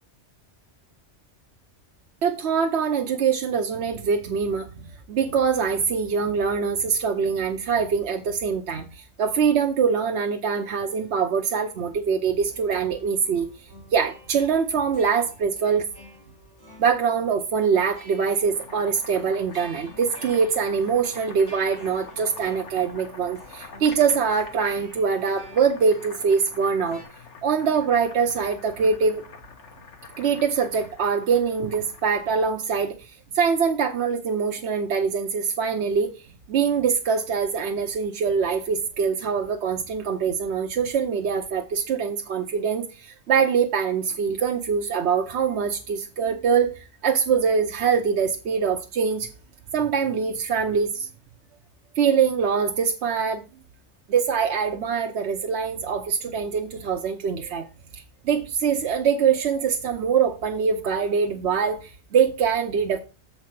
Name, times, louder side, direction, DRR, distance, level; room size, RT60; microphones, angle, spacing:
voice 1, 2.2-4.7 5.1-13.5 13.9-15.9 16.8-27.0 27.4-29.2 30.2-36.1 36.5-49.3 49.7-51.1 52.0-53.4 54.1-57.7 57.9-63.0, right 6 dB, 70° right, 1.0 m, -23 dB
sound 1, 10.5-27.0, equal, 40° left, 4.7 m, -51 dB
Boiling, 18.3-32.4, left 4 dB, 85° left, 1.6 m, -46 dB
7.4 x 4.6 x 5.8 m
omnidirectional pair, 1.2 m